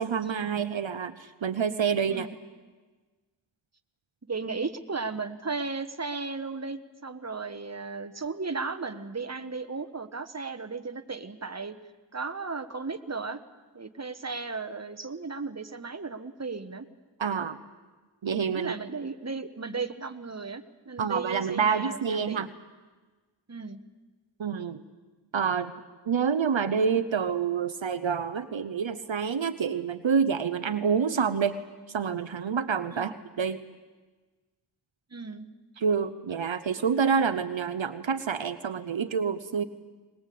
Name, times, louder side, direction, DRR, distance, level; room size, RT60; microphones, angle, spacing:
voice 1, 0.0-2.3 17.2-17.6 18.2-18.7 21.0-22.5 24.4-24.8 25.3-25.7 26.1-31.6 31.9-33.6 35.8-39.6, right 6 dB, 75° right, 11 dB, 0.9 m, -27 dB
voice 2, 4.2-11.7 12.1-13.4 13.7-16.8 18.5-22.5 23.5-23.8 32.9-33.2 35.1-35.5, right 4 dB, 35° right, 7 dB, 1.4 m, -35 dB
22.0 x 20.5 x 8.6 m, 1.3 s
wide cardioid pair, 45°, 46 cm